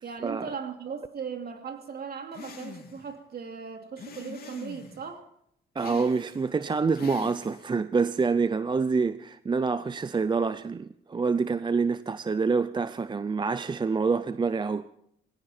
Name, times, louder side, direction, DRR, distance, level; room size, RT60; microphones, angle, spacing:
voice 1, 0.0-5.3, right 6 dB, 50° right, 2.7 m, -38 dB
sound 1, 2.3-3.1 4.0-5.0 5.8-6.5 6.9-7.7, left 5 dB, 50° left, 3.5 m, -44 dB
voice 2, 5.8-14.9, right 4 dB, 25° right, 0.5 m, -27 dB
19.5 x 17.0 x 4.4 m
cardioid pair, 90°, 20 cm